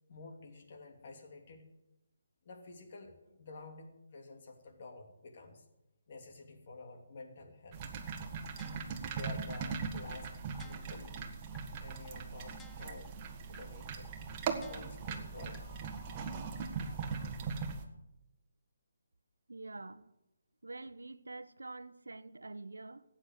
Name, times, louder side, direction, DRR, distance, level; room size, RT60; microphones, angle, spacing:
voice 1, 0.1-1.6 2.4-5.6 6.1-7.8 9.1-10.3 10.6-11.2 11.8-13.1 13.5-14.1 14.6-17.3, left 3 dB, 45° left, 2.8 m, -51 dB
sound 1, 7.7-17.8, right 5 dB, 25° right, 1.6 m, -40 dB
sound 2, 8.6-9.1 9.5-9.6 10.0-10.1 10.5-11.1 11.5-11.6 12.0-12.1 12.5-13.1 13.5-13.6 14.0-14.1 14.5-15.1 15.5-15.6, left 5 dB, 10° left, 1.0 m, -57 dB
voice 2, 19.5-20.1 20.6-23.0, right 2 dB, 85° right, 0.9 m, -46 dB
15.0 x 8.9 x 7.9 m
figure-of-eight pair, 150°, 0 cm